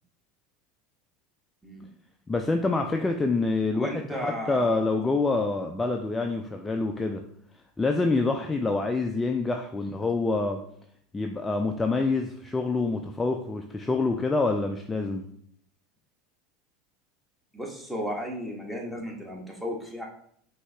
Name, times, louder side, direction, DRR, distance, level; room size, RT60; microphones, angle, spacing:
voice 1, 2.3-7.2 7.8-10.6 11.1-15.2, left 3 dB, 15° left, 3 dB, 0.4 m, -26 dB
voice 2, 3.7-4.8 9.8-10.0 17.5-20.1, equal, 5° right, -1 dB, 1.3 m, -34 dB
5.1 x 2.8 x 3.4 m, 0.64 s
hypercardioid pair, 85°, 0 cm